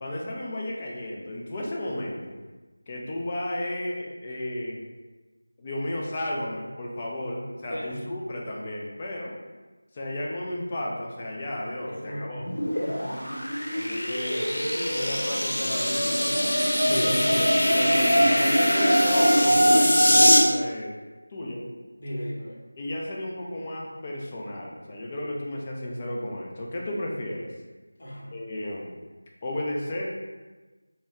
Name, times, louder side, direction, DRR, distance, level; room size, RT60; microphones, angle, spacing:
voice 1, 0.0-2.4 2.9-4.8 5.6-9.4 9.9-12.5 13.7-16.5 17.6-21.0 21.3-21.6 22.8-27.5 28.3-28.9 29.4-30.1, left 1 dB, 20° left, -2 dB, 0.4 m, -33 dB
voice 2, 7.7-8.0 11.9-12.3 12.7-13.3 16.9-17.8 22.0-22.6 28.0-28.4, equal, 35° left, -5 dB, 0.9 m, -33 dB
sound 1, 12.4-20.4, equal, 85° left, 0.9 m, -22 dB
4.2 x 2.1 x 3.5 m, 1.2 s
figure-of-eight pair, 175°, 0 cm